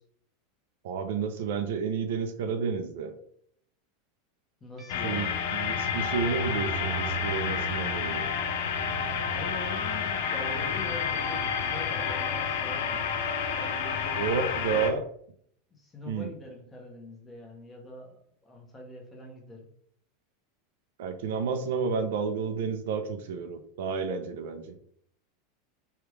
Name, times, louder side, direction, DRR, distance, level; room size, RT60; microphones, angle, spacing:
voice 1, 0.8-3.2 5.0-8.3 14.2-15.0 16.1-16.3 21.0-24.8, right 5 dB, 75° right, 7 dB, 0.4 m, -31 dB
voice 2, 4.6-5.4 9.3-13.1 13.6-15.0 15.7-19.7, left 1 dB, 15° left, 0 dB, 0.8 m, -43 dB
sound 1, 4.8-12.3, right 1 dB, 25° right, 0.8 m, -48 dB
sound 2, 4.9-14.9, left 6 dB, 70° left, 0.4 m, -30 dB
3.3 x 2.3 x 3.1 m, 0.65 s
supercardioid pair, 150°, 0 cm